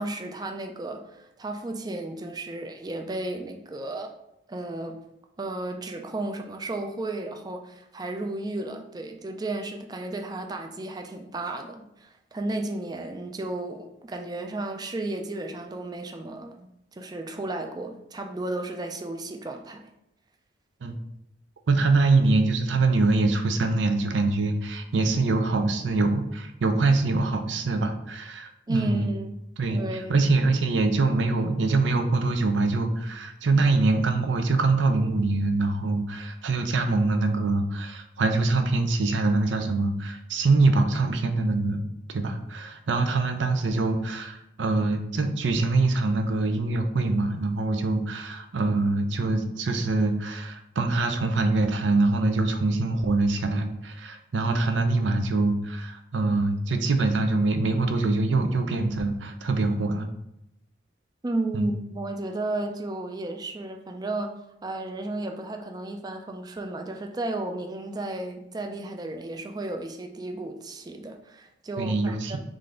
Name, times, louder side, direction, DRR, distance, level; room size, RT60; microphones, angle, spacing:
voice 1, 0.0-4.1 4.5-5.0 5.4-19.8 28.7-29.4 29.7-30.2 61.2-64.3 64.6-72.4, right 2 dB, 20° right, 4 dB, 0.4 m, -33 dB
voice 2, 21.7-29.1 29.6-29.8 30.1-41.8 42.1-60.1 61.5-61.7 71.8-72.4, right 3 dB, 80° right, 6 dB, 0.5 m, -24 dB
3.8 x 3.3 x 3.8 m, 0.83 s
head